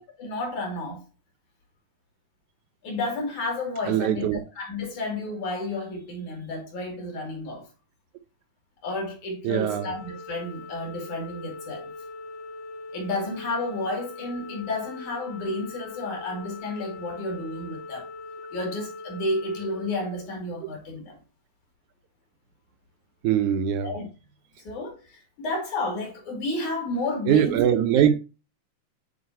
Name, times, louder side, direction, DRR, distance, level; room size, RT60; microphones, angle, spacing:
voice 1, 0.2-1.0 2.8-7.7 8.8-11.9 12.9-18.1 18.5-21.2 23.8-24.1 24.6-27.6, left 2 dB, 65° left, 3.9 m, -31 dB
voice 2, 3.9-4.4 9.4-9.9 23.2-23.9 27.3-28.1, right 10 dB, 75° right, 2.1 m, -22 dB
Organ, 9.7-20.7, left 3 dB, 85° left, 3.6 m, -41 dB
9.6 x 4.4 x 2.7 m
omnidirectional pair, 3.8 m